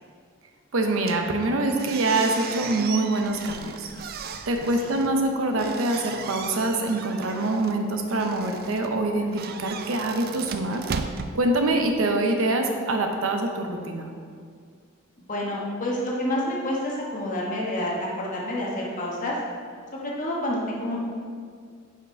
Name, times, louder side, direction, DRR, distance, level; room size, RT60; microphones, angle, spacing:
voice 1, 0.7-3.9 4.5-10.8 11.3-14.1, right 2 dB, 90° right, 4 dB, 0.7 m, -25 dB
sound 1, 1.0-12.1, right 6 dB, 50° right, 0.3 m, -37 dB
voice 2, 15.3-19.4 19.9-21.0, left 1 dB, 40° left, -4 dB, 1.2 m, -28 dB
5.6 x 5.0 x 4.4 m, 2.1 s
head